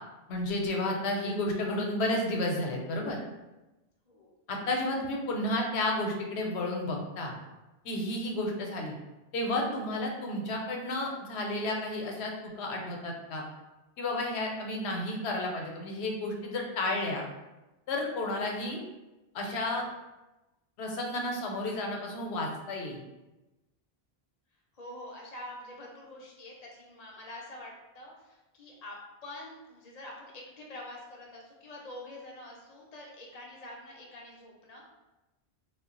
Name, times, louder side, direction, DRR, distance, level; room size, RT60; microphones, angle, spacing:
voice 1, 0.3-3.2 4.5-7.3 7.8-8.9 9.3-13.4 14.0-17.3 17.9-18.8 19.3-19.8 20.8-23.0, left 1 dB, 85° left, 0 dB, 0.8 m, -32 dB
voice 2, 24.8-29.0 29.2-34.9, left 1 dB, 45° left, -2 dB, 0.6 m, -46 dB
2.2 x 2.0 x 3.6 m, 1.0 s
omnidirectional pair, 1.1 m